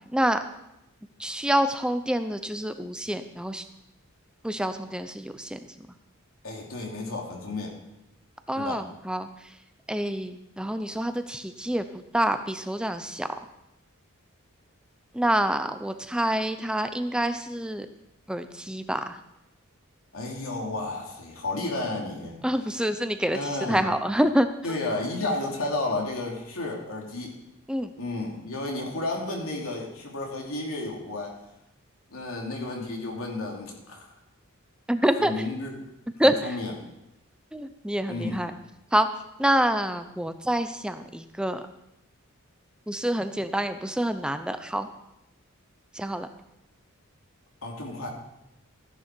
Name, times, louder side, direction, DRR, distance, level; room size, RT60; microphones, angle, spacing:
voice 1, 0.1-0.4 1.2-3.6 4.4-5.9 8.5-9.5 9.9-11.9 12.1-13.3 15.1-17.9 18.3-19.2 22.4-24.5 27.7-27.9 34.9-35.6 36.2-36.6 37.5-38.5 38.9-39.1 39.4-41.6 42.9-44.9 45.9-46.3, right 1 dB, 5° right, 9 dB, 0.6 m, -27 dB
voice 2, 6.4-7.8 8.5-8.8 20.1-22.4 23.3-23.9 24.6-27.3 28.0-31.3 32.1-34.1 35.2-35.7 36.2-36.7 38.1-38.4 47.6-48.1, left 2 dB, 75° left, -1 dB, 3.0 m, -32 dB
14.5 x 10.5 x 4.5 m, 0.87 s
head